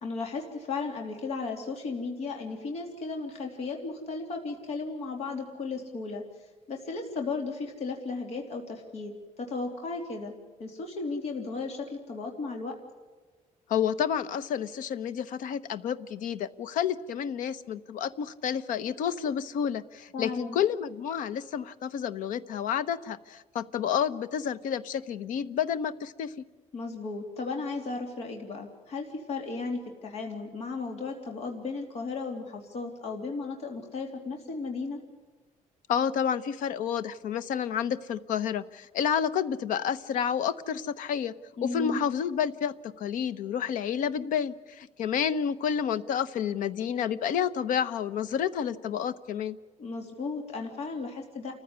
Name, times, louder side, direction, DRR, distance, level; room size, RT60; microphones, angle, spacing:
voice 1, 0.0-6.2 6.7-10.3 10.6-12.7 20.1-20.6 26.7-35.0 41.6-42.0 49.8-51.5, left 4 dB, 50° left, 3 dB, 3.0 m, -35 dB
voice 2, 13.7-26.3 35.9-41.3 41.6-49.6, left 8 dB, 75° left, 14 dB, 1.1 m, -30 dB
29.5 x 15.0 x 9.5 m, 1.3 s
cardioid pair, 160°, 14 cm